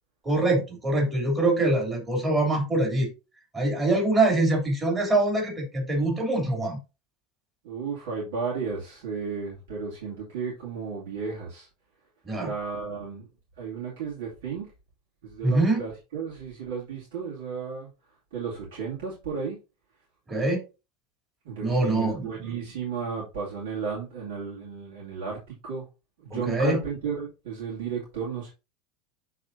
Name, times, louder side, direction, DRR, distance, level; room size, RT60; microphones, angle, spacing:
voice 1, 0.2-3.1 3.5-6.8 12.2-12.5 15.4-15.8 20.3-20.6 21.6-22.3 26.3-26.8, right 2 dB, 20° right, -1 dB, 3.0 m, -24 dB
voice 2, 7.6-11.7 12.4-13.3 13.6-14.7 15.2-17.9 18.3-19.6 21.4-25.8 26.2-28.5, right 5 dB, 85° right, -6 dB, 2.7 m, -33 dB
11.0 x 4.1 x 2.7 m, 0.29 s
supercardioid pair, 135°, 0 cm